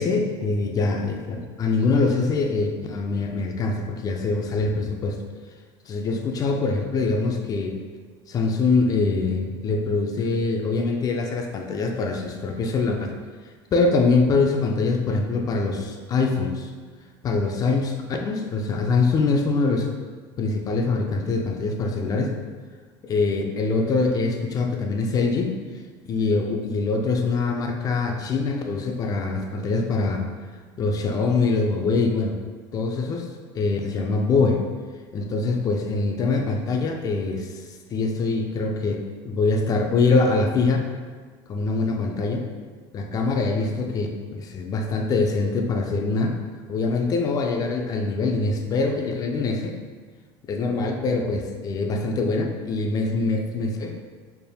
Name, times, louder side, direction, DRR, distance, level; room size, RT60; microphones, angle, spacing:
voice 1, 0.0-5.2 5.9-7.8 8.3-13.1 13.7-16.7 17.2-19.9 20.4-22.4 23.0-25.5 26.1-30.3 30.8-32.4 32.7-33.3 33.5-34.7 35.1-37.6 37.9-39.0 39.2-40.9 41.5-42.5 42.9-46.4 46.7-49.8 50.5-54.0, left 3 dB, 30° left, 3 dB, 0.5 m, -24 dB
4.2 x 3.4 x 2.3 m, 1.5 s
cardioid pair, 130°, 12 cm